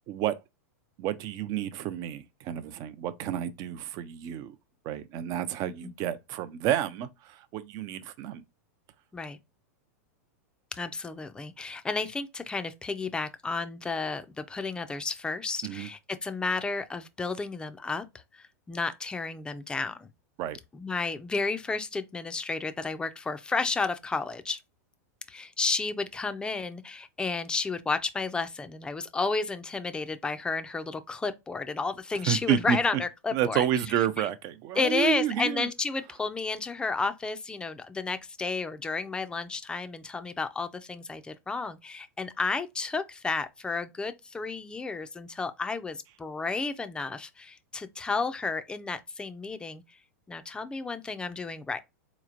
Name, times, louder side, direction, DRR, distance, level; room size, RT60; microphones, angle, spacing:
voice 1, 0.1-0.4 1.0-4.6 4.8-8.4 15.6-15.9 20.4-20.6 32.2-32.8 33.3-35.7, right 10 dB, 40° right, 0.6 m, -30 dB
voice 2, 10.7-18.0 18.3-20.1 20.7-24.6 25.3-33.7 34.2-34.3 34.7-49.8 50.3-51.8, left 4 dB, 10° left, 0.5 m, -32 dB
4.1 x 3.0 x 2.4 m
hypercardioid pair, 125°, 9 cm